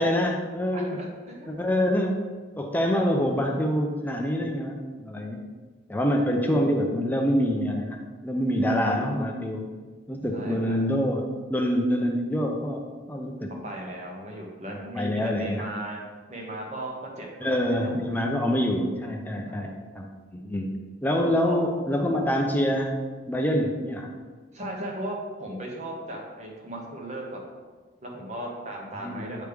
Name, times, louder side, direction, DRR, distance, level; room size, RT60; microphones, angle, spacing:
voice 1, 0.0-1.0 1.5-2.2 2.6-5.4 5.9-9.7 10.1-13.5 14.7-15.7 17.4-20.1 20.3-20.7 21.0-23.0 23.3-24.1 29.0-29.4, equal, 10° left, 1 dB, 0.5 m, -26 dB
voice 2, 0.7-1.5 2.9-3.0 10.3-10.8 13.6-16.0 16.3-18.0 19.4-19.7 21.4-21.7 22.2-22.3 24.5-27.4 28.0-29.4, right 1 dB, 35° right, -1 dB, 1.1 m, -36 dB
9.2 x 3.2 x 3.4 m, 1.4 s
head